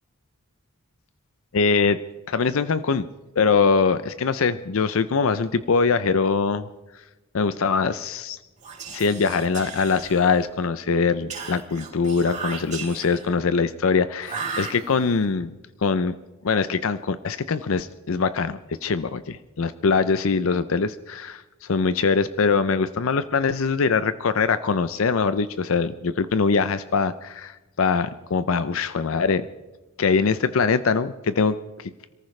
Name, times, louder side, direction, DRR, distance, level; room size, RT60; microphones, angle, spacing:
voice 1, 1.5-2.0 2.3-3.0 3.4-6.7 7.3-8.4 8.9-15.5 15.8-16.1 16.4-29.5 30.0-31.5, left 5 dB, 65° left, 13 dB, 0.5 m, -22 dB
Whispering, 8.6-10.5 11.3-13.3 14.2-15.3, right 5 dB, 35° right, 3.6 m, -36 dB
27.5 x 14.5 x 3.2 m, 1.1 s
head